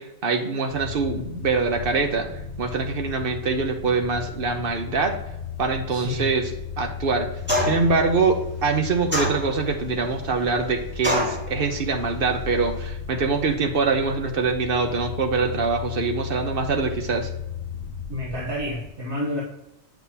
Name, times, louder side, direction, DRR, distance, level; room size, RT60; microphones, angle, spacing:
voice 1, 0.0-2.3 2.6-5.2 5.6-7.3 7.7-17.3, right 4 dB, 55° right, 5 dB, 1.0 m, -24 dB
sound 1, 0.7-18.9, left 7 dB, 50° left, 1.2 m, -35 dB
voice 2, 5.9-6.3 18.1-19.4, left 1 dB, 85° right, -5 dB, 1.5 m, -29 dB
sound 2, 7.5-8.0 9.1-9.8 11.0-11.4, equal, 10° right, 1.7 m, -24 dB
8.5 x 6.0 x 2.8 m, 0.90 s
omnidirectional pair, 1.1 m